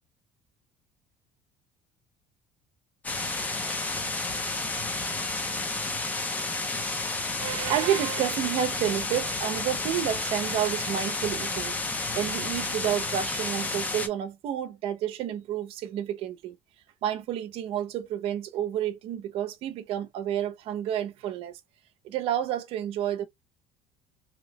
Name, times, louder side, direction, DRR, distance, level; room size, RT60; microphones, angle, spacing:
sound 1, 3.0-14.1, left 3 dB, 15° left, 0.6 m, -31 dB
voice 1, 7.4-11.8 12.1-16.6 17.0-21.6 22.0-23.3, right 10 dB, 55° right, 0.7 m, -30 dB
3.1 x 2.8 x 3.0 m
cardioid pair, 170°, 12 cm